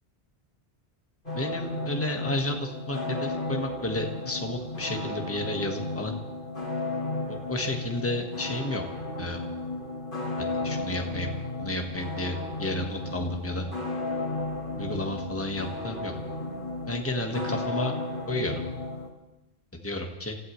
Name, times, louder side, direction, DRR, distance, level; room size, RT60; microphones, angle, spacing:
sound 1, 1.3-19.1, left 2 dB, 50° left, 2.9 m, -34 dB
voice 1, 1.3-6.1 7.3-8.8 9.2-9.4 10.4-11.3 11.6-13.7 14.8-16.1 16.9-17.9 18.3-18.5 19.8-20.3, left 1 dB, 10° left, 2 dB, 1.5 m, -32 dB
28.5 x 15.0 x 3.2 m, 0.97 s
omnidirectional pair, 1.1 m